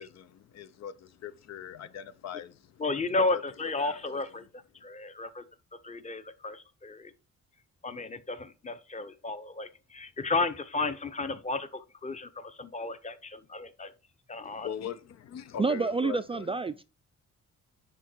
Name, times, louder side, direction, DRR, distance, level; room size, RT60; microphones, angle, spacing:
voice 1, 0.0-2.8 3.3-3.4 3.8-4.2 14.4-16.5, left 9 dB, 60° left, 0.6 m, -41 dB
voice 2, 2.8-4.4 4.8-5.4 5.8-7.1 7.8-13.9 14.3-14.7, left 3 dB, 25° left, 0.8 m, -33 dB
voice 3, 15.6-16.8, right 4 dB, 20° right, 0.4 m, -28 dB
9.7 x 3.6 x 4.5 m
cardioid pair, 90°, 30 cm